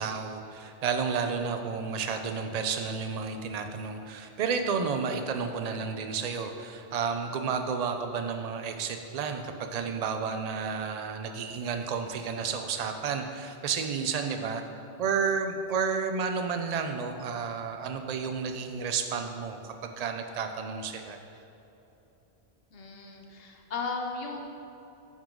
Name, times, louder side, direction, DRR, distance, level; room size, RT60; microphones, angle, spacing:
voice 1, 0.0-14.6 15.0-21.2, right 5 dB, 50° right, 6 dB, 0.5 m, -31 dB
voice 2, 22.7-24.4, left 4 dB, 65° left, 2 dB, 1.0 m, -36 dB
9.5 x 5.6 x 3.8 m, 3.0 s
omnidirectional pair, 1.1 m